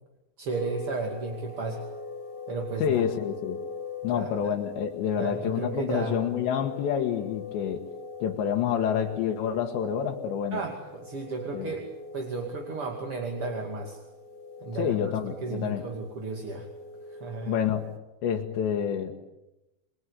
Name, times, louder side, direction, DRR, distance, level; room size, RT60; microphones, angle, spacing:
voice 1, 0.4-1.8 2.5-3.1 4.0-4.5 5.2-6.2 10.5-11.9 12.1-14.0 14.6-16.7 17.1-17.6, right 3 dB, 35° right, 2 dB, 2.8 m, -34 dB
sound 1, 0.5-18.0, left 4 dB, 40° left, 1.6 m, -43 dB
voice 2, 2.8-3.6 4.0-7.9 8.2-10.6 11.5-11.7 14.8-15.8 17.5-17.8 18.2-19.1, left 8 dB, 80° left, 3 dB, 3.6 m, -28 dB
28.5 x 22.0 x 8.3 m, 0.97 s
omnidirectional pair, 5.1 m